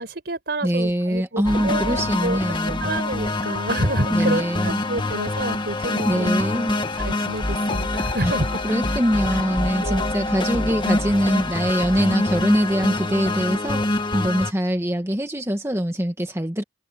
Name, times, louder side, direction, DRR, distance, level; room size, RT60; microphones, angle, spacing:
voice 1, 0.0-2.4 2.7-6.6 7.0-8.6 9.3-9.4 9.8-10.1, right 1 dB, 65° right, 5.5 m, -28 dB
voice 2, 0.6-2.9 4.1-4.8 6.0-6.8 8.2-8.3 8.6-16.6, equal, 15° right, 1.6 m, -23 dB
sound 1, 1.4-14.5, left 2 dB, 25° left, 1.5 m, -25 dB
head